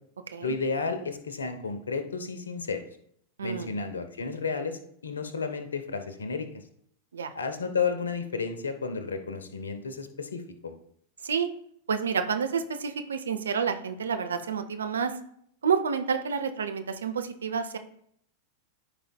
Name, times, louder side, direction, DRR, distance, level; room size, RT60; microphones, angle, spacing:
voice 1, 0.4-2.8 3.4-6.5 7.3-10.7, left 5 dB, 70° left, 9 dB, 0.9 m, -32 dB
voice 2, 3.4-3.7 7.1-7.3 11.2-11.5 11.9-15.2 15.6-17.8, right 6 dB, 70° right, 8 dB, 0.8 m, -29 dB
13.5 x 5.0 x 2.3 m, 0.68 s
figure-of-eight pair, 90°, 0 cm